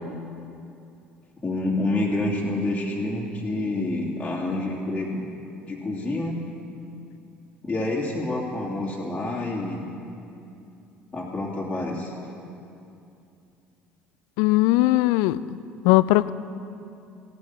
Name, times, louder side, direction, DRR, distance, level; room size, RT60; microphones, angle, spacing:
voice 1, 1.4-5.3 5.7-6.3 7.6-9.8 11.1-12.1, left 2 dB, 15° left, -5 dB, 2.7 m, -28 dB
voice 2, 14.4-15.6 15.8-16.3, left 17 dB, 60° left, 17 dB, 0.4 m, -19 dB
16.5 x 9.6 x 7.3 m, 2.6 s
figure-of-eight pair, 60°, 6 cm